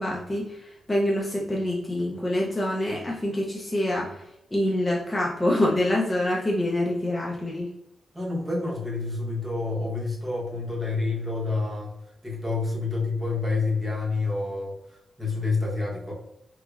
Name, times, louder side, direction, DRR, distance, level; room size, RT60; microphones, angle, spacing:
voice 1, 0.0-4.2 4.5-7.7, left 1 dB, 15° left, -3 dB, 0.4 m, -26 dB
voice 2, 8.1-11.9 12.2-14.7 15.2-16.1, left 3 dB, 10° right, -5 dB, 0.9 m, -28 dB
3.5 x 3.0 x 2.3 m, 0.84 s
wide cardioid pair, 160°, 0 cm